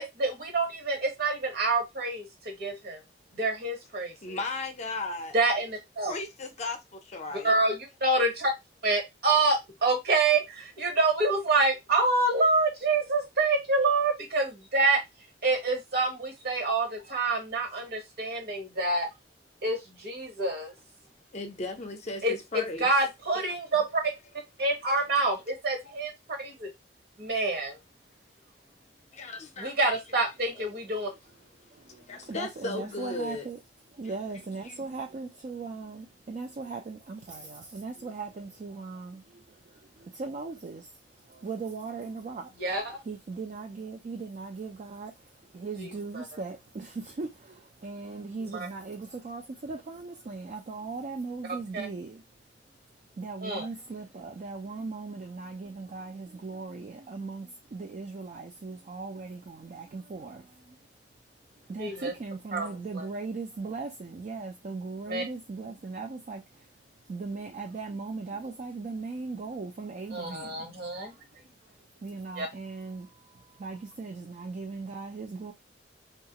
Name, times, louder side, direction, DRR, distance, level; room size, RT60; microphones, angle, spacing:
voice 1, 0.0-3.0 3.3-4.4 5.3-6.1 7.3-8.5 8.8-15.0 15.4-19.1 19.6-20.7 22.2-22.3 22.8-24.1 24.6-26.7 27.2-27.8 29.6-31.1 42.6-43.0 45.8-46.2 48.4-48.7 51.4-51.9 53.4-53.7 61.8-62.1 62.5-63.1 65.1-65.2 70.1-71.1 72.4-72.5, right 3 dB, 60° right, 1.1 m, -27 dB
voice 2, 4.2-5.4 6.1-7.6 21.3-22.9 23.3-23.5 25.0-25.1 29.1-30.0 30.5-30.7 31.7-33.5 34.0-34.1 34.7-34.8, left 2 dB, 40° left, 0.6 m, -36 dB
voice 3, 31.7-33.6 33.9-41.0 41.3-42.5 43.1-52.2 53.2-60.8 61.7-66.7 67.1-70.7 71.0-71.2 72.0-75.5, right 4 dB, 40° right, 0.4 m, -39 dB
2.8 x 2.3 x 2.8 m
head